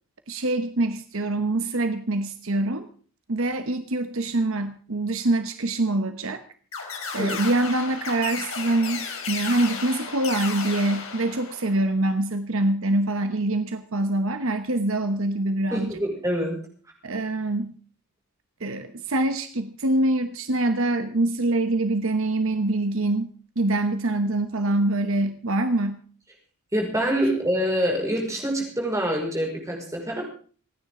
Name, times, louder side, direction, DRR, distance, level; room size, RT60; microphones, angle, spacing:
voice 1, 0.3-2.9 3.3-6.4 7.1-16.0 17.0-17.7 18.6-26.0, right 2 dB, 65° right, 9 dB, 1.0 m, -25 dB
sound 1, 6.7-11.9, left 5 dB, 65° left, 4.1 m, -34 dB
voice 2, 15.7-16.6 26.7-30.2, equal, 15° right, 0 dB, 5.4 m, -25 dB
28.0 x 10.0 x 3.8 m, 0.42 s
head